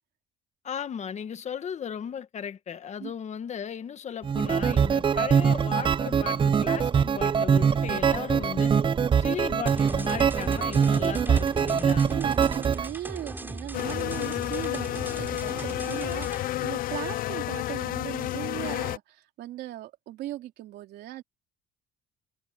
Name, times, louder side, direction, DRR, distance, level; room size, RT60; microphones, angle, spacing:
voice 1, 0.6-8.7 9.2-12.1, left 8 dB, 45° left, 1.6 m, -36 dB
sound 1, 4.2-12.9, right 7 dB, 30° right, 0.6 m, -23 dB
sound 2, 9.7-16.4, right 2 dB, 10° right, 6.8 m, -38 dB
voice 2, 12.0-21.2, right 14 dB, 75° right, 3.1 m, -38 dB
sound 3, 13.7-19.0, left 15 dB, 60° left, 0.4 m, -31 dB
cardioid pair, 110°, 17 cm